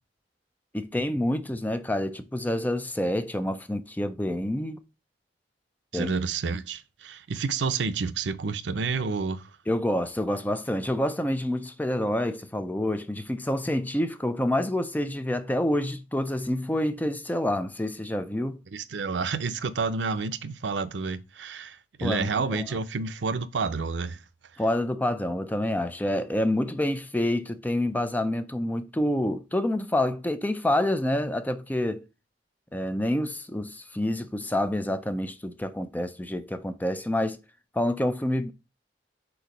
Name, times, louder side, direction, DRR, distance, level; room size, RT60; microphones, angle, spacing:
voice 1, 0.7-4.8 5.9-6.1 9.7-18.6 22.0-22.7 24.6-32.0 32.7-37.4 37.7-38.5, left 1 dB, 10° left, 0.5 m, -27 dB
voice 2, 5.9-9.4 18.7-24.2, right 4 dB, 85° right, 0.6 m, -29 dB
4.7 x 4.0 x 5.1 m
head